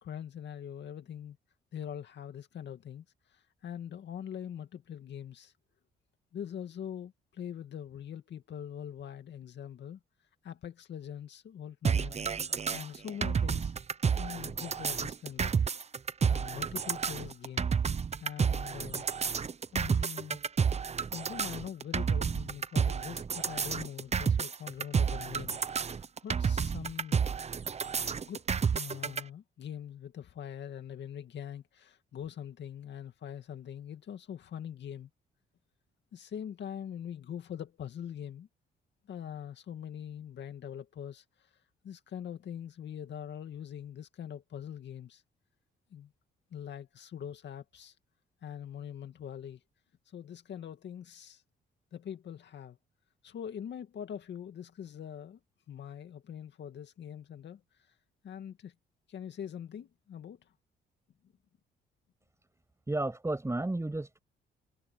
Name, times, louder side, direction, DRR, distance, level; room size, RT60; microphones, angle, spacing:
voice 1, 0.0-1.4 1.7-5.5 6.3-10.0 10.4-12.1 12.7-13.7 14.2-15.6 16.2-17.7 18.2-19.1 19.7-20.4 21.1-27.3 28.2-28.4 28.7-35.1 36.1-38.5 39.1-45.2 45.9-46.1 46.5-48.0 48.4-49.6 50.1-51.4 51.9-52.8 53.2-55.4 55.7-57.9 58.2-58.7 59.1-60.5, left 9 dB, 60° left, 2.3 m, -43 dB
sound 1, 11.8-29.2, right 6 dB, 35° right, 0.9 m, -30 dB
voice 2, 62.9-64.2, right 2 dB, 15° right, 7.2 m, -32 dB
cardioid pair, 90°, 20 cm